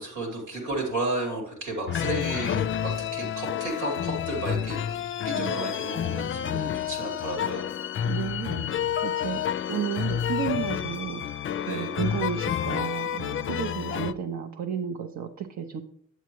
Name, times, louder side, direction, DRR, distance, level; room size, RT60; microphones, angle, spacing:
voice 1, 0.0-4.8 5.2-7.7 11.7-11.9, right 2 dB, 85° right, 1 dB, 2.4 m, -32 dB
sound 1, 1.9-14.1, left 9 dB, 40° left, 0.4 m, -29 dB
voice 2, 5.4-5.7 8.0-8.6 9.0-11.2 11.7-15.8, right 8 dB, 60° right, 4 dB, 0.7 m, -32 dB
8.1 x 8.0 x 3.1 m, 0.66 s
hypercardioid pair, 45°, 32 cm